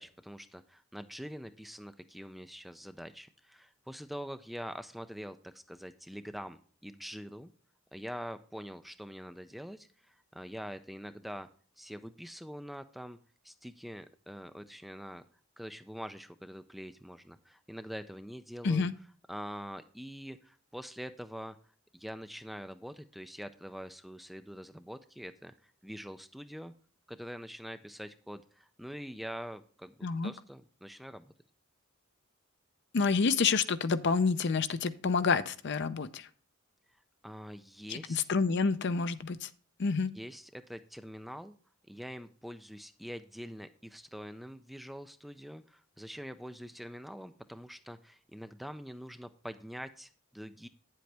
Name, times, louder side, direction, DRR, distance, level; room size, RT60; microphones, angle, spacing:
voice 1, 0.0-7.5 7.9-11.5 11.8-13.2 13.4-15.2 15.6-18.9 19.3-21.6 21.9-26.7 27.1-31.3 37.2-38.2 40.1-41.6 41.9-50.7, equal, ahead, 9 dB, 0.3 m, -44 dB
voice 2, 32.9-36.3 37.9-39.5 39.8-40.1, left 4 dB, 55° left, 13 dB, 0.5 m, -28 dB
9.0 x 7.8 x 3.3 m, 0.43 s
head